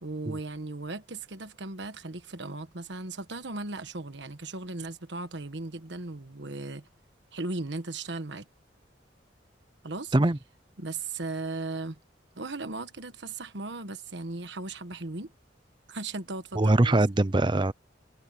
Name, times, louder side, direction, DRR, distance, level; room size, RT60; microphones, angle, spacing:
voice 1, 0.0-6.9 7.3-8.5 9.8-10.1 10.8-12.0 12.4-15.3 15.9-17.0, right 2 dB, 65° right, 1.4 m, -37 dB
voice 2, 16.6-17.7, right 2 dB, 25° right, 0.7 m, -22 dB
head